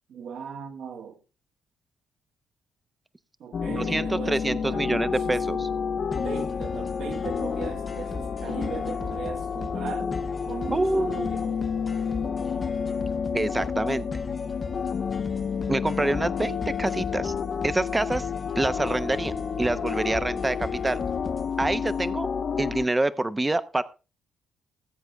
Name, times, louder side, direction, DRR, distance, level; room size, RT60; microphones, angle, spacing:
voice 1, 0.1-1.2 3.4-5.7 6.2-10.1 10.5-11.6, right 6 dB, 70° right, 2.1 m, -38 dB
sound 1, 3.5-22.9, left 6 dB, 50° left, 1.1 m, -30 dB
voice 2, 3.7-5.6 10.7-11.3 13.3-14.1 15.7-17.3 17.6-18.3 18.6-21.0 21.6-22.3 22.6-23.8, right 2 dB, 15° right, 0.9 m, -26 dB
sound 2, 6.1-22.1, left 3 dB, 30° left, 1.0 m, -40 dB
19.5 x 7.9 x 3.5 m
cardioid pair, 90°, 0 cm